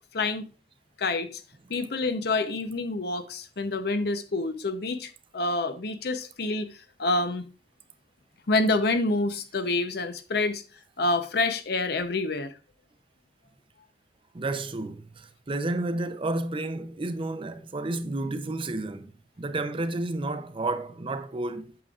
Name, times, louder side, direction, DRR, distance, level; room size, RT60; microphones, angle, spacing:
voice 1, 0.1-0.5 1.0-1.4 1.7-6.7 7.0-7.5 8.5-10.6 11.0-12.5, left 2 dB, 65° left, 0.7 m, -27 dB
voice 2, 14.3-21.8, right 2 dB, 30° right, 0.5 m, -31 dB
8.6 x 6.8 x 2.4 m
head